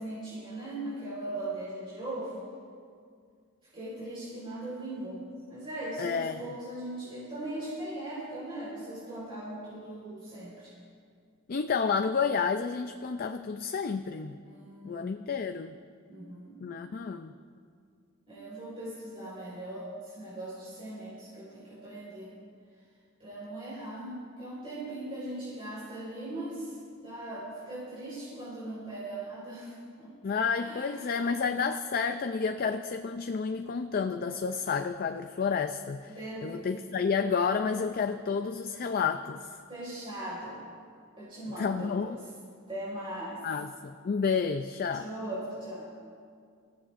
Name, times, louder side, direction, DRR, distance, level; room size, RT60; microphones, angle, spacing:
voice 1, 0.0-2.4 3.7-10.7 14.4-15.1 16.1-16.6 18.3-22.3 23.2-26.8 27.0-30.2 30.6-31.2 36.1-36.7 39.7-40.6 41.1-42.1 42.7-43.4 44.9-45.9, right 1 dB, 25° right, -9 dB, 4.5 m, -39 dB
voice 2, 6.0-6.4 11.5-14.4 14.8-15.7 16.6-17.3 30.2-36.2 36.4-39.5 41.6-42.2 43.4-45.1, left 5 dB, 45° left, 7 dB, 0.4 m, -30 dB
24.0 x 15.0 x 2.5 m, 2.2 s
head